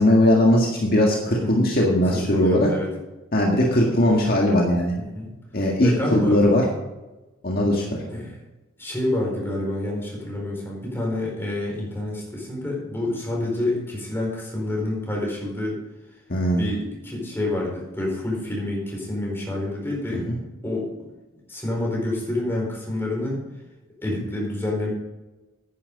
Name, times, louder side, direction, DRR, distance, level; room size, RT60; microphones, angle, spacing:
voice 1, 0.0-2.7 3.3-4.9 5.5-6.7 7.4-8.0 16.3-16.6 20.1-20.4, left 1 dB, 45° left, -1 dB, 1.8 m, -19 dB
voice 2, 1.3-1.6 2.1-2.9 5.1-5.3 5.8-6.4 8.1-8.4 8.8-15.8 16.6-20.2 20.6-20.9 21.5-23.4 24.0-24.9, left 1 dB, 10° left, -3 dB, 4.5 m, -28 dB
10.5 x 10.0 x 5.3 m, 1.1 s
head